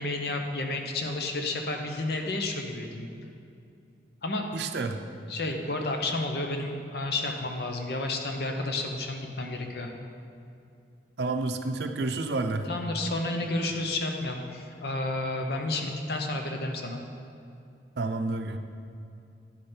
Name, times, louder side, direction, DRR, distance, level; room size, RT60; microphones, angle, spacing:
voice 1, 0.0-3.1 4.2-4.5 5.3-9.9 12.7-17.0, left 2 dB, 65° left, 3 dB, 0.8 m, -31 dB
voice 2, 4.5-5.0 11.2-12.7 18.0-18.6, right 3 dB, 70° right, 7 dB, 0.5 m, -29 dB
10.0 x 5.0 x 4.4 m, 2.6 s
head